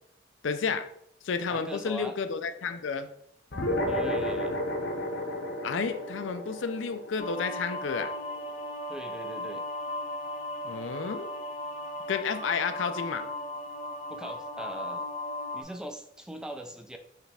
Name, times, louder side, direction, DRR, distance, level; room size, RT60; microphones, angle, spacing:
voice 1, 0.4-0.9 1.2-3.1 5.6-8.1 10.6-11.3 12.1-13.3, left 5 dB, 80° left, 9 dB, 0.4 m, -31 dB
voice 2, 1.5-2.1 3.9-4.6 8.9-9.6 14.1-15.1 15.5-17.0, right 1 dB, 5° right, 6 dB, 0.3 m, -40 dB
sound 1, 3.5-8.3, left 1 dB, 65° left, 0.8 m, -32 dB
sound 2, 7.2-15.6, left 1 dB, 30° left, 0.6 m, -36 dB
4.7 x 3.3 x 3.3 m, 0.71 s
head